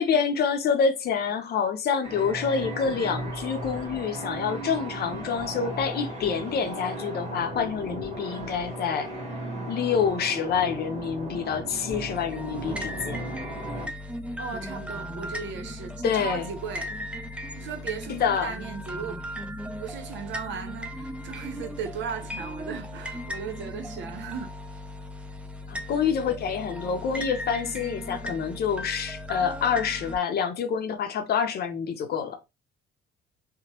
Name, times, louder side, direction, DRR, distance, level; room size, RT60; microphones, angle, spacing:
voice 1, 0.0-9.1 9.7-13.3 16.0-16.5 18.1-18.5 25.7-32.4, left 6 dB, 50° left, 0.7 m, -27 dB
sound 1, 2.0-13.9, right 1 dB, 35° right, 1.2 m, -36 dB
sound 2, 11.9-30.2, left 1 dB, 5° right, 0.4 m, -37 dB
voice 2, 14.4-17.0 17.6-19.2 19.8-24.5, right 6 dB, 65° right, 0.8 m, -36 dB
2.9 x 2.1 x 2.9 m
cardioid pair, 95°, 20 cm